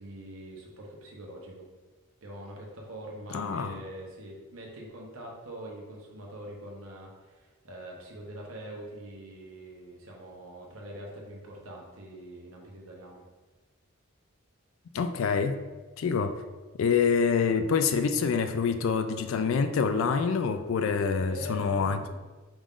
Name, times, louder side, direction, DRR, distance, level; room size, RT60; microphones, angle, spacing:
voice 1, 0.0-1.6 2.2-13.2 21.3-22.2, right 1 dB, 70° right, -2 dB, 1.0 m, -43 dB
voice 2, 3.3-3.8 14.9-15.6 16.0-16.4 16.8-22.0, left 5 dB, 60° left, 9 dB, 0.3 m, -26 dB
5.1 x 2.5 x 3.6 m, 1.3 s
head